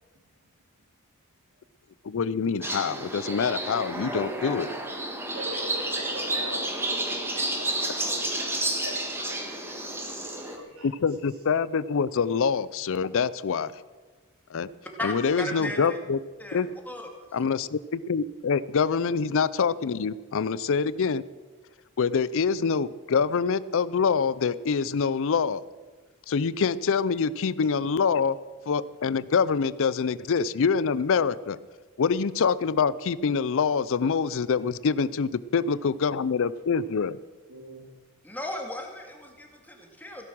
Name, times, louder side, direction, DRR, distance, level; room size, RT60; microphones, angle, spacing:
voice 1, 2.0-4.7 10.8-13.7 14.5-14.7 15.0-16.2 16.5-16.7 17.3-21.2 22.0-25.6 26.3-28.4 28.7-31.6 32.0-37.2, left 5 dB, 65° left, 18 dB, 0.5 m, -25 dB
sound 1, 2.6-10.6, right 1 dB, 10° right, 1.6 m, -31 dB
voice 2, 5.3-10.9 15.7-15.9 35.6-35.7 36.7-36.8 37.5-37.9, right 1 dB, 75° right, 0 dB, 3.7 m, -42 dB
voice 3, 15.0-16.0 16.4-17.1 38.2-40.3, left 1 dB, 10° left, 2 dB, 2.1 m, -36 dB
16.5 x 10.5 x 6.2 m, 1.3 s
head